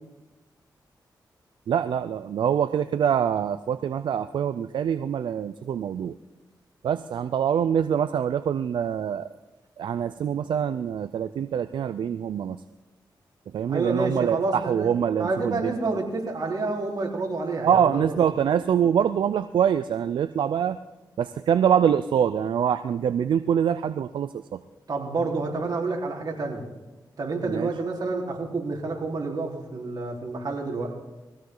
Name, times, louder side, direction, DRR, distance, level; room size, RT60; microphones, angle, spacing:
voice 1, 1.7-6.2 6.8-9.3 9.8-12.6 13.5-16.0 17.6-20.8 21.2-24.6 27.5-27.7, right 8 dB, 80° right, 13 dB, 0.5 m, -24 dB
voice 2, 13.7-14.9 15.2-18.1 24.9-26.6 27.2-31.0, right 3 dB, 55° right, -2 dB, 4.2 m, -29 dB
22.0 x 16.0 x 3.9 m, 1.1 s
cardioid pair, 55°, 8 cm